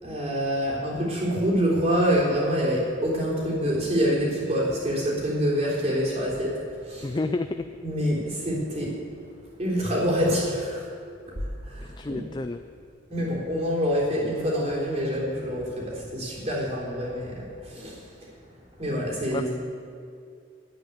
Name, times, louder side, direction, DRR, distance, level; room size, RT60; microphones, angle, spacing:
voice 1, 0.0-6.6 6.8-7.1 7.8-9.0 9.6-10.8 11.4-12.2 13.1-18.0 18.8-19.5, equal, 35° right, -5 dB, 3.7 m, -26 dB
voice 2, 7.0-7.7 12.0-12.6 19.3-19.5, left 2 dB, 25° left, 8 dB, 0.3 m, -30 dB
10.5 x 9.2 x 9.4 m, 2.4 s
head